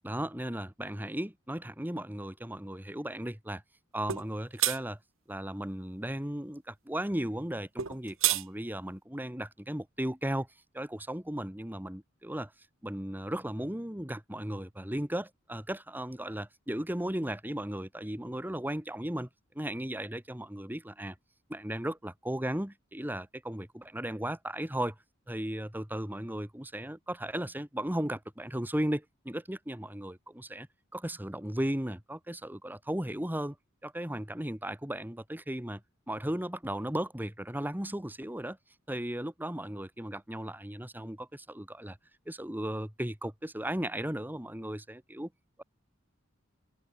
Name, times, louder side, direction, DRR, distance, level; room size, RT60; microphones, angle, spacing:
voice 1, 0.0-3.6 3.9-5.0 5.3-10.5 10.7-12.5 12.8-19.3 19.6-21.2 21.5-25.0 25.3-30.7 30.9-33.6 33.8-35.8 36.1-38.6 38.9-42.0 42.3-45.3, right 1 dB, 10° right, 1.8 m, -36 dB
sound 1, 4.1-4.3 4.6-4.8 7.8-8.4, right 13 dB, 75° right, 1.3 m, -27 dB
head